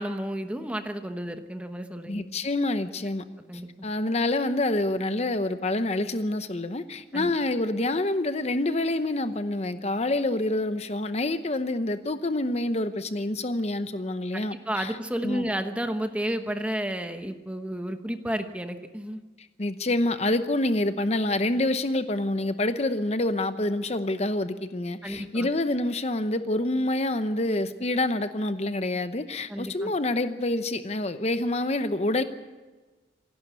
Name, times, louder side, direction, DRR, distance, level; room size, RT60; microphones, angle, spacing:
voice 1, 0.0-2.2 3.5-3.9 7.1-7.3 14.3-19.2 25.0-25.5 29.5-29.9, equal, 5° right, 7 dB, 1.0 m, -32 dB
voice 2, 2.1-3.2 3.8-15.0 15.2-15.4 19.6-32.2, left 2 dB, 35° left, 10 dB, 0.8 m, -27 dB
27.0 x 11.5 x 8.3 m, 1.3 s
head